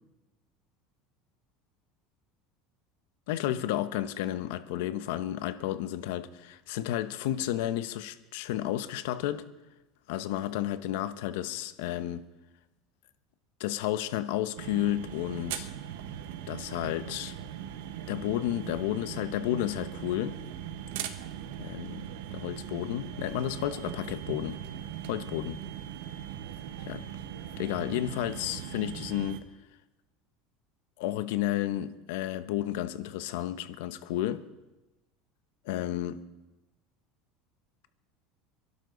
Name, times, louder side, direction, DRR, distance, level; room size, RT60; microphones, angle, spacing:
voice 1, 3.3-9.4 10.1-12.2 13.6-15.7 16.5-17.3 18.1-20.4 21.6-22.1 22.3-24.6 25.1-25.6 26.9-27.1 27.6-29.4 31.0-34.5 35.6-36.2, left 13 dB, 80° left, 1.0 m, -32 dB
sound 1, 14.6-29.4, right 10 dB, 90° right, 1.3 m, -40 dB
27.5 x 12.0 x 4.0 m
cardioid pair, 155°, 0 cm